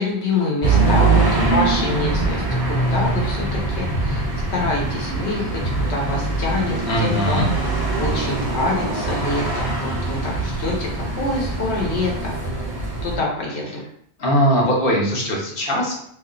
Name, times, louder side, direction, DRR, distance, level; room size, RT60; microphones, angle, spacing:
voice 1, 0.0-4.2 4.5-7.5 8.0-10.9 11.2-12.4 13.0-13.8, left 2 dB, 75° left, -2 dB, 1.2 m, -25 dB
sound 1, 0.6-13.2, right 3 dB, 35° right, 0.4 m, -23 dB
voice 2, 6.9-7.5 14.2-15.9, equal, 60° left, -2 dB, 1.0 m, -20 dB
2.6 x 2.3 x 3.6 m, 0.68 s
omnidirectional pair, 1.1 m